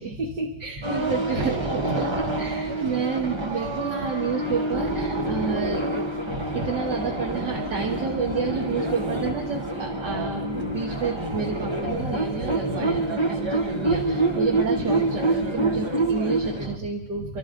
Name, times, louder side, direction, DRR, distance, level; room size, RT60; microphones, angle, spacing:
voice 1, 0.0-5.8 6.3-17.4, right 5 dB, 60° right, -1 dB, 2.1 m, -30 dB
sound 1, 0.8-16.8, right 2 dB, 20° right, 0.8 m, -27 dB
29.0 x 12.5 x 3.8 m, 1.0 s
omnidirectional pair, 2.1 m